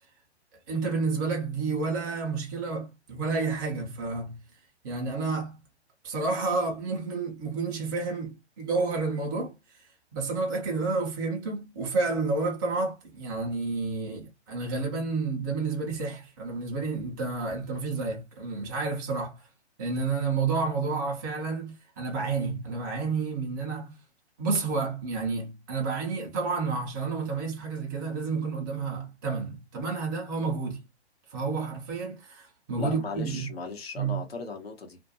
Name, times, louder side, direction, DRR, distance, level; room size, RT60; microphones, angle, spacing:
voice 1, 0.7-4.4 4.8-5.6 6.0-9.5 10.1-19.5 19.8-24.0 24.4-30.8 31.3-33.5 34.0-34.2, right 4 dB, 20° right, 0.5 m, -30 dB
voice 2, 32.8-35.0, left 4 dB, 60° left, 1.0 m, -37 dB
2.5 x 2.1 x 2.6 m
figure-of-eight pair, 125°, 34 cm